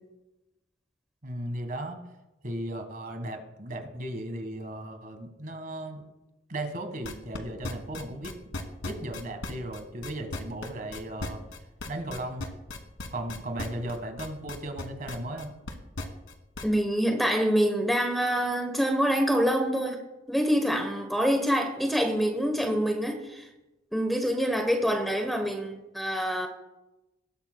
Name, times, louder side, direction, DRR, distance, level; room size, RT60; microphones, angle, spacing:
voice 1, 1.2-2.0 2.4-6.0 6.5-8.6 8.8-11.4 11.9-12.5 13.1-15.6, right 1 dB, 45° right, 6 dB, 1.5 m, -36 dB
sound 1, 7.0-16.7, left 2 dB, 90° left, 1.3 m, -37 dB
voice 2, 16.6-20.0 20.3-23.5 23.9-26.5, equal, ahead, 4 dB, 0.9 m, -26 dB
19.0 x 11.5 x 2.2 m, 1.0 s
head